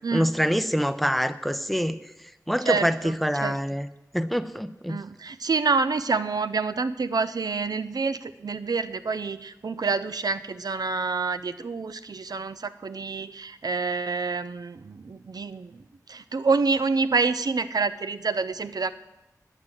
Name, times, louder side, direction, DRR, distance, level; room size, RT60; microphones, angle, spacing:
voice 1, 0.1-2.0 2.5-3.9 4.1-5.0, equal, ahead, 12 dB, 0.6 m, -25 dB
voice 2, 2.7-3.1 3.4-3.5 4.9-15.8 16.1-18.9, right 4 dB, 75° right, 12 dB, 0.5 m, -27 dB
9.5 x 8.0 x 7.5 m, 0.95 s
wide cardioid pair, 65°, 7 cm